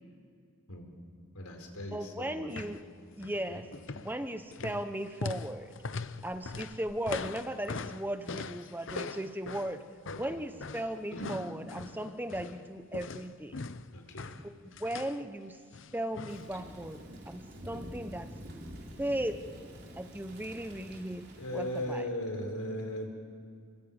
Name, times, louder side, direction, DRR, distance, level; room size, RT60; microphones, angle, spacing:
voice 1, 1.3-2.5 3.5-3.6 10.1-10.4 11.1-11.4 13.9-14.3 16.1-16.2 17.7-17.8 21.4-23.1, left 1 dB, 80° left, 3 dB, 4.6 m, -38 dB
voice 2, 1.9-2.8 3.2-3.6 4.0-5.7 6.2-9.8 10.2-13.5 14.4-14.5 14.8-15.6 15.9-18.7 19.0-19.4 20.0-21.2 21.5-22.0, right 1 dB, 10° right, 8 dB, 0.9 m, -37 dB
sound 1, 2.5-2.8 3.1-3.4 3.7-12.6 12.9-15.2 15.7-16.5 16.8-16.9, left 4 dB, 55° left, 0.7 m, -41 dB
Thunder / Rain, 16.3-22.0, right 1 dB, 50° right, 3.9 m, -47 dB
28.5 x 22.5 x 8.9 m, 2.2 s
head